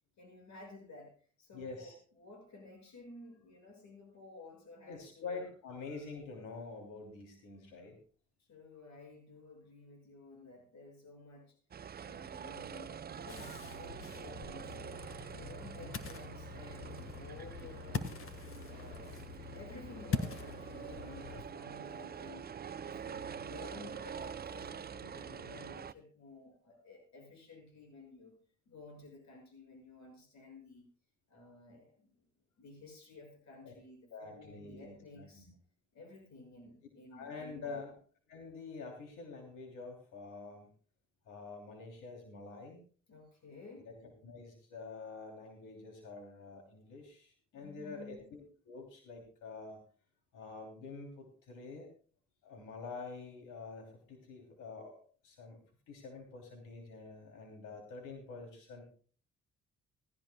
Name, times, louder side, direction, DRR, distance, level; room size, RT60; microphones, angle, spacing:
voice 1, 0.2-1.1 1.4-5.4 8.5-11.6 12.0-15.0 15.3-18.0 18.6-28.3 28.7-30.9 31.3-32.1 32.6-35.5 35.9-37.9 43.1-43.9 47.5-48.3, left 3 dB, 65° left, 2 dB, 6.4 m, -53 dB
voice 2, 1.5-1.9 4.9-8.0 15.8-15.9 33.6-33.7 34.1-35.5 37.1-37.9 38.3-40.7 41.2-42.8 43.8-43.9 44.2-49.8 50.3-51.9 52.4-55.6 55.9-58.9, left 4 dB, 90° left, 2 dB, 3.2 m, -47 dB
sound 1, 11.7-25.9, right 7 dB, 30° right, 0.5 m, -46 dB
Ocean, 13.3-21.4, left 5 dB, 45° left, 1.7 m, -43 dB
18.5 x 16.0 x 2.3 m, 0.42 s
cardioid pair, 90°, 30 cm